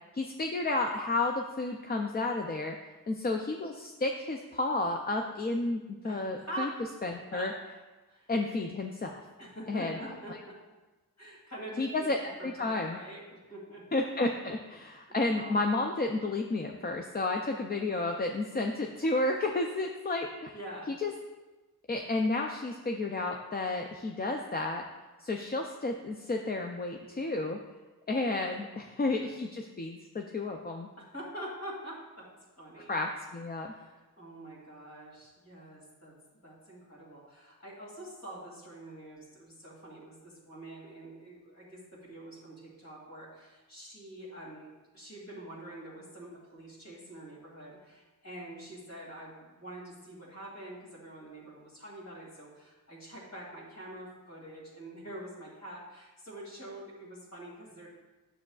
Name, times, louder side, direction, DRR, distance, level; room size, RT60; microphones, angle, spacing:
voice 1, 0.1-2.8 3.1-6.7 7.0-7.5 8.3-9.2 9.7-10.0 10.3-10.4 11.8-13.0 13.9-20.5 21.0-21.1 21.9-24.8 25.2-27.6 28.1-30.9 32.9-33.7, left 2 dB, 25° left, 3 dB, 0.4 m, -31 dB
voice 2, 6.0-6.8 7.3-7.5 8.1-8.3 9.4-10.6 11.2-12.1 12.4-13.9 15.1-15.6 20.5-20.9 28.7-29.0 29.2-29.3 31.0-32.3 32.6-32.9 33.7-57.9, right 1 dB, 45° left, -4 dB, 2.5 m, -45 dB
9.8 x 6.9 x 2.4 m, 1.2 s
wide cardioid pair, 135°, 37 cm